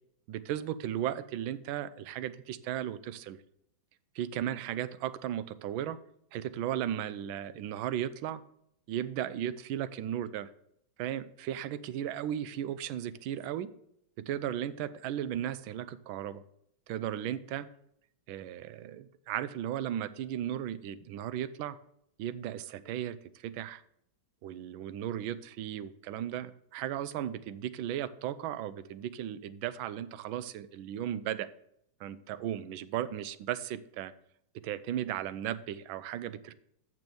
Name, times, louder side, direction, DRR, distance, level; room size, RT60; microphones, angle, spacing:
voice 1, 0.3-3.4 4.1-6.0 6.3-8.4 8.9-10.5 11.0-13.7 14.2-16.4 16.9-17.7 18.3-21.8 22.2-23.8 24.4-31.5 32.0-34.1 34.6-36.5, right 11 dB, 80° right, 15 dB, 1.4 m, -36 dB
6.9 x 6.1 x 7.7 m, 0.73 s
omnidirectional pair, 2.2 m